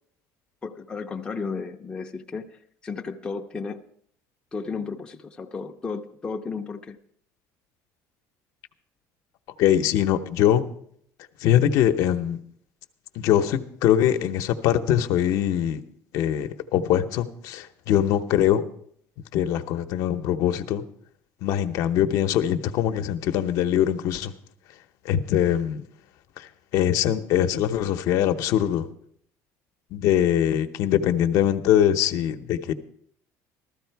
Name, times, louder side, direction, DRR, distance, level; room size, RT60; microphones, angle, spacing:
voice 1, 0.6-3.8 4.5-7.0, left 4 dB, 15° left, 2 dB, 0.6 m, -34 dB
voice 2, 9.6-10.7 11.4-12.4 13.2-15.8 16.1-18.6 19.3-20.8 21.4-24.3 25.0-25.8 26.4-28.9 29.9-32.7, left 10 dB, 60° left, 8 dB, 0.8 m, -22 dB
14.5 x 13.5 x 4.6 m, 0.66 s
cardioid pair, 165°, 7 cm